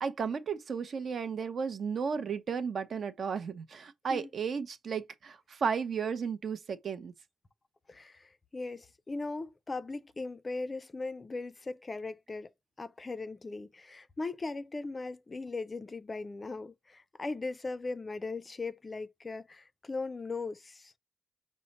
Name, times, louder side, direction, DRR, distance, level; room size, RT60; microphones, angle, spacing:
voice 1, 0.0-7.1, right 6 dB, 50° right, 0.6 m, -34 dB
voice 2, 7.9-12.5 12.8-20.9, left 3 dB, 25° left, 0.4 m, -39 dB
5.5 x 2.0 x 4.0 m
wide cardioid pair, 140°, 0 cm